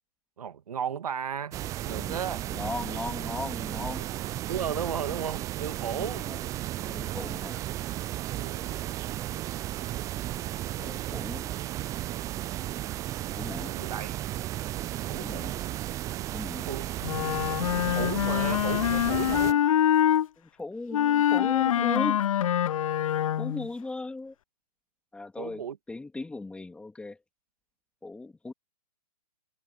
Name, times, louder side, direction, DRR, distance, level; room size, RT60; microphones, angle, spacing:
voice 1, 0.4-2.5 4.5-6.3 8.3-8.8 13.6-14.2 15.1-15.6 16.7-16.9 17.9-19.7 25.4-25.8, right 8 dB, 65° right, 2.2 m, -35 dB
sound 1, 1.5-19.5, right 14 dB, 15° right, 0.6 m, -34 dB
voice 2, 1.9-2.2 2.5-4.1 5.9-6.4 6.8-7.6 8.7-8.8 9.2-9.3 10.8-11.5 13.4-13.7 15.2-15.5 16.3-16.7 20.4-22.2 23.4-24.3 25.1-25.6 25.9-27.2 28.0-28.5, left 3 dB, 5° left, 3.4 m, -37 dB
Wind instrument woodwind instrument, 17.0-20.3 20.9-23.7, left 10 dB, 55° left, 0.5 m, -25 dB
figure-of-eight pair, 130°, 21 cm